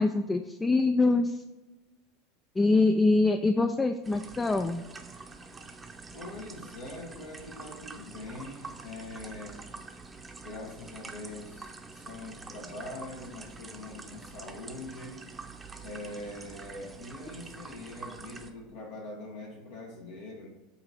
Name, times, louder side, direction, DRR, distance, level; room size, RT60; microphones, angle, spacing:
voice 1, 0.0-1.4 2.6-4.8, left 3 dB, 15° left, 7 dB, 0.3 m, -24 dB
sound 1, 4.0-18.5, right 3 dB, 20° right, 0.7 m, -46 dB
voice 2, 6.1-9.7 10.4-15.2 15.8-20.5, left 2 dB, 70° left, -1 dB, 1.4 m, -43 dB
8.2 x 2.8 x 4.8 m, 1.1 s
hypercardioid pair, 90°, 0 cm